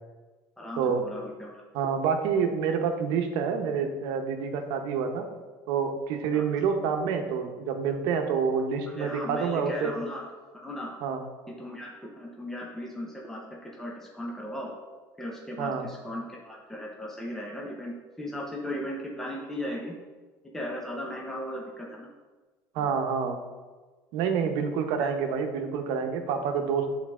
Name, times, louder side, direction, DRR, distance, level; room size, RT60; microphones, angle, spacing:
voice 1, 0.6-1.6 6.3-6.6 9.0-10.3 10.5-10.9 11.5-14.7 15.2-19.9 20.5-22.1 22.8-22.9 25.0-25.1, equal, 5° left, -2 dB, 0.9 m, -37 dB
voice 2, 1.7-5.2 5.7-9.9 11.0-11.2 15.6-15.8 22.7-23.4 24.1-26.9, right 6 dB, 80° right, 5 dB, 0.8 m, -27 dB
8.0 x 4.0 x 3.6 m, 1.3 s
cardioid pair, 120°, 8 cm